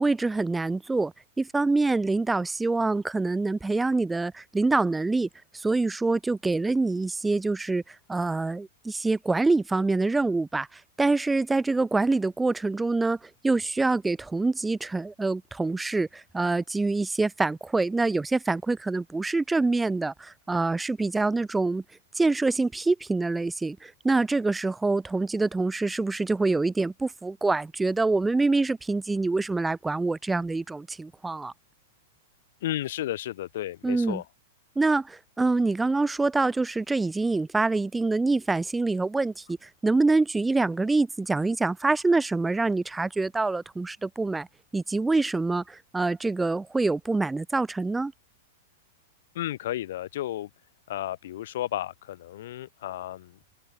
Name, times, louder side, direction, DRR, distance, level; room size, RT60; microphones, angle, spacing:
voice 1, 0.0-5.3 5.5-13.2 13.4-21.8 22.2-31.5 33.8-34.2 34.8-44.5 44.7-48.1, right 3 dB, 10° right, 2.3 m, -25 dB
voice 2, 32.6-34.2 49.3-50.5 50.9-53.3, left 13 dB, 65° left, 4.8 m, -33 dB
hypercardioid pair, 120°, 0 cm